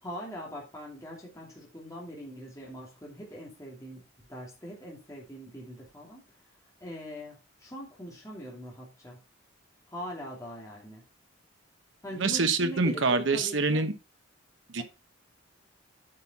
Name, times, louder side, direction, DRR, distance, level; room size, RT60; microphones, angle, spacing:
voice 1, 0.0-6.2 6.8-9.2 9.9-11.0 12.0-13.8 14.8-14.9, equal, 15° left, -3 dB, 2.5 m, -42 dB
voice 2, 12.2-13.9 14.7-14.8, right 4 dB, 60° right, 9 dB, 1.0 m, -26 dB
9.0 x 5.6 x 4.2 m, 0.29 s
head